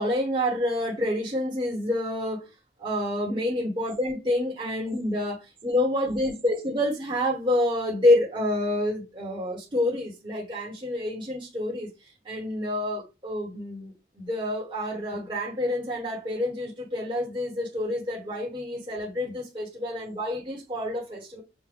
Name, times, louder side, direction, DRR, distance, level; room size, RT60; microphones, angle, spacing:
voice 1, 0.0-2.4 2.8-11.9 12.2-21.4, left 1 dB, 25° right, 1.2 m, -28 dB
6.5 x 2.2 x 3.4 m
head